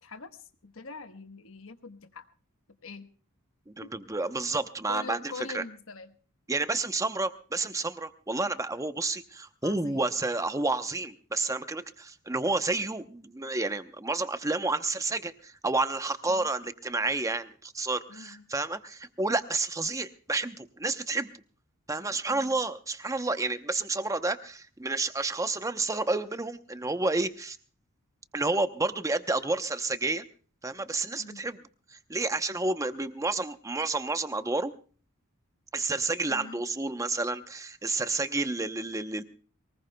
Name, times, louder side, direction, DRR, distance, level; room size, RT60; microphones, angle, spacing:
voice 1, 0.0-2.2 2.8-3.1 3.8-3.9 4.9-6.2 9.6-10.1 16.3-16.5 18.1-18.4 22.3-22.6 31.2-31.6 36.3-36.6, left 4 dB, 65° left, 9 dB, 1.2 m, -44 dB
voice 2, 3.7-5.2 5.5-5.6 6.5-21.3 21.9-27.6 28.3-30.2 30.6-31.6 31.9-34.7 35.7-39.2, right 3 dB, 15° right, 10 dB, 0.8 m, -30 dB
23.0 x 20.0 x 2.2 m, 0.40 s
head